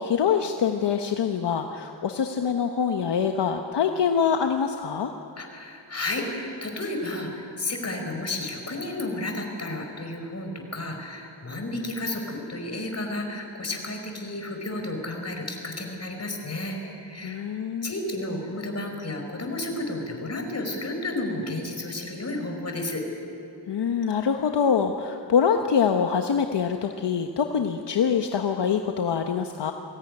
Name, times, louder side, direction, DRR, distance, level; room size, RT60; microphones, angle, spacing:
voice 1, 0.0-5.1 17.2-17.9 23.7-29.7, left 7 dB, 65° left, 5 dB, 1.2 m, -24 dB
voice 2, 5.4-17.4 17.8-23.0, left 2 dB, 35° left, 3 dB, 5.0 m, -32 dB
22.0 x 16.5 x 9.7 m, 2.7 s
cardioid pair, 70°, 44 cm